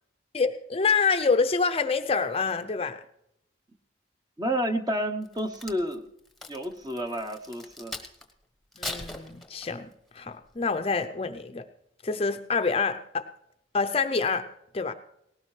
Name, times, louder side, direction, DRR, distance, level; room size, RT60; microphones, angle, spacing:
voice 1, 0.3-3.0 8.8-9.9 10.1-11.6 12.0-13.3 13.7-14.5 14.7-14.9, left 4 dB, 30° left, 9 dB, 0.6 m, -26 dB
voice 2, 4.4-6.1 6.5-8.0, equal, 20° right, 7 dB, 0.9 m, -30 dB
Crack, 5.2-8.3 8.7-9.9 10.5-10.7, left 2 dB, ahead, 1.1 m, -40 dB
19.0 x 17.5 x 3.2 m, 0.77 s
head